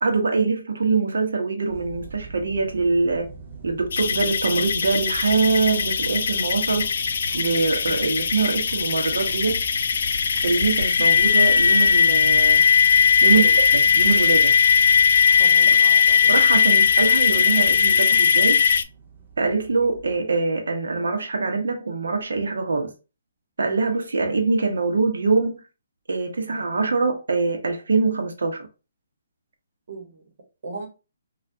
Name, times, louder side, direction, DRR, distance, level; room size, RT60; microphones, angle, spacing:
voice 1, 0.0-3.3 3.6-6.9 7.3-9.6 10.4-12.7 13.2-13.5 13.7-14.5 16.3-18.6 19.4-22.9 23.6-25.6 26.1-28.7, right 4 dB, 80° right, 0.8 m, -23 dB
sound 1, 1.7-20.2, right 5 dB, 35° right, 0.6 m, -42 dB
sound 2, 3.9-18.8, left 6 dB, 60° left, 0.3 m, -19 dB
voice 2, 13.2-13.5 15.4-16.4 29.9-30.2 30.6-30.9, right 2 dB, 55° right, 1.1 m, -36 dB
3.3 x 2.4 x 2.7 m
hypercardioid pair, 160°, 0 cm